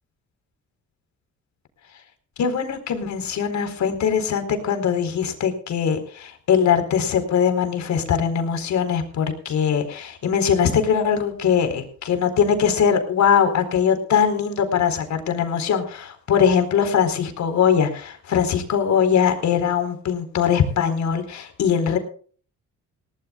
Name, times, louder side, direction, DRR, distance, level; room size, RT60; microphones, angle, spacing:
voice 1, 2.4-22.0, left 7 dB, 65° left, 8 dB, 4.2 m, -21 dB
21.0 x 18.0 x 2.3 m, 0.43 s
cardioid pair, 90°, 30 cm